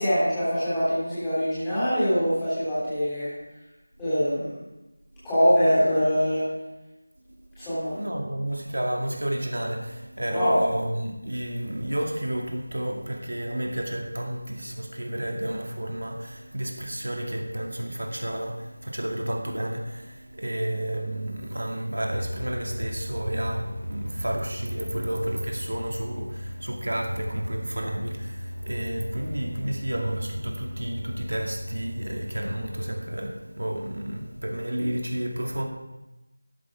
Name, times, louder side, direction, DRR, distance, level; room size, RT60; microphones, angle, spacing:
voice 1, 0.0-3.3 4.0-4.5 5.2-6.4 7.6-7.9 10.3-10.6, equal, 5° left, -15 dB, 3.0 m, -23 dB
voice 2, 7.9-35.7, right 1 dB, 85° right, 1 dB, 2.3 m, -31 dB
sound 1, 22.0-32.8, equal, 45° right, 3.3 m, -36 dB
13.0 x 10.5 x 3.6 m, 0.99 s
figure-of-eight pair, 180°, 0 cm